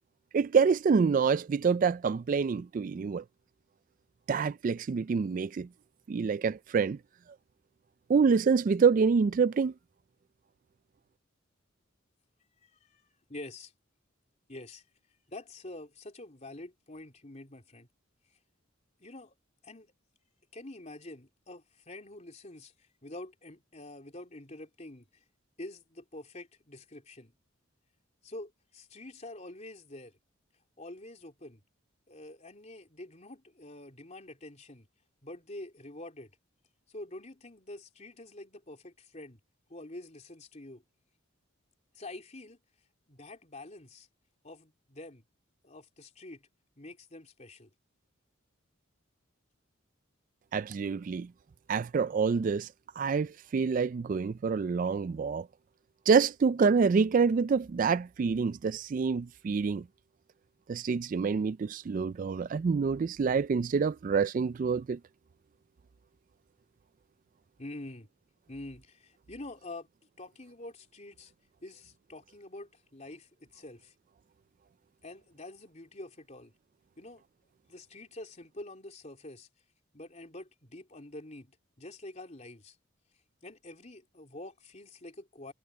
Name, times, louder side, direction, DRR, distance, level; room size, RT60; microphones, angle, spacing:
voice 1, 0.3-3.2 4.3-5.7 6.1-7.0 8.1-9.7 50.5-51.3 51.7-52.7 53.0-55.5 56.1-59.8 60.7-65.0, right 5 dB, 40° right, 0.3 m, -27 dB
voice 2, 12.6-13.0 13.3-13.7 14.5-14.8 15.3-17.9 19.0-19.3 19.6-19.9 20.5-25.2 25.6-27.3 28.2-30.2 30.8-31.6 32.1-34.9 35.2-36.3 36.9-39.4 39.7-40.8 41.9-42.6 43.1-44.1 44.4-45.2 45.6-46.5 46.8-47.7 67.6-68.1 68.5-69.9 70.2-71.3 71.6-73.9 75.0-76.5 77.0-77.2 77.7-79.5 79.9-82.8 83.4-85.5, left 2 dB, 35° left, 3.5 m, -46 dB
head